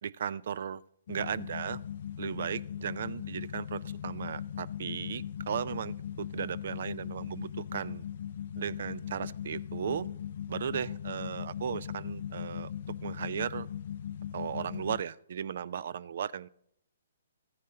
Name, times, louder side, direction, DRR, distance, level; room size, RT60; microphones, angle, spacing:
voice 1, 0.0-0.8 1.1-1.8 2.2-8.0 8.6-10.1 10.5-12.7 13.0-13.7 14.3-16.5, right 8 dB, 60° right, 22 dB, 0.4 m, -36 dB
sound 1, 1.1-15.0, left 9 dB, 60° left, 0.3 m, -39 dB
13.5 x 9.5 x 3.8 m, 0.69 s
hypercardioid pair, 140°, 0 cm